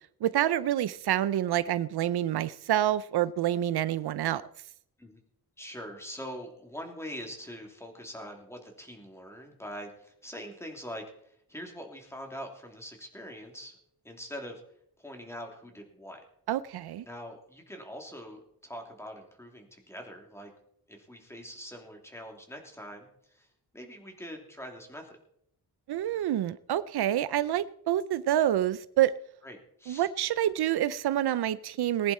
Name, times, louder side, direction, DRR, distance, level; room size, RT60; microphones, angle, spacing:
voice 1, 0.2-4.4 16.5-17.0 25.9-29.1 29.9-32.1, right 12 dB, 80° right, 16 dB, 0.6 m, -27 dB
voice 2, 5.6-13.8 14.0-14.6 15.0-16.2 17.1-20.5 20.9-23.5 23.7-25.2 29.4-30.1, equal, 5° left, 2 dB, 3.0 m, -43 dB
20.0 x 10.5 x 4.3 m, 0.70 s
wide cardioid pair, 150°, 38 cm